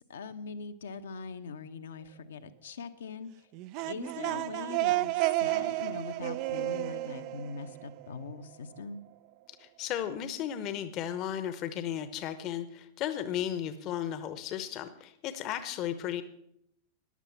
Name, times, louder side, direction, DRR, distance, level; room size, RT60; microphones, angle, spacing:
voice 1, 0.1-3.3 3.9-9.0, left 5 dB, 65° left, 8 dB, 1.0 m, -42 dB
sound 1, 3.5-8.3, right 17 dB, 45° right, 0.4 m, -31 dB
voice 2, 9.6-16.2, left 10 dB, 40° left, 13 dB, 1.0 m, -35 dB
14.5 x 10.5 x 5.7 m, 0.72 s
figure-of-eight pair, 90°, 0 cm